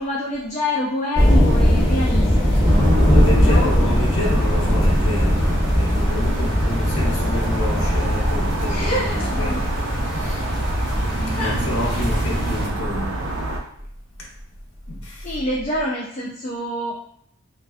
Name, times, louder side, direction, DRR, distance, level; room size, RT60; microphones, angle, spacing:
voice 1, 0.0-2.9 3.4-3.7 8.7-9.6 11.3-11.5 11.8-12.2 15.2-16.9, left 1 dB, 30° left, -4 dB, 0.3 m, -27 dB
sound 1, 1.1-12.7, equal, 20° right, 1.0 m, -20 dB
sound 2, 2.7-13.6, right 1 dB, 60° right, 0.5 m, -27 dB
voice 2, 2.9-9.6 10.1-13.5 14.2-14.3 14.9-15.3, left 1 dB, 85° left, -2 dB, 0.7 m, -29 dB
2.5 x 2.2 x 2.3 m, 0.68 s
head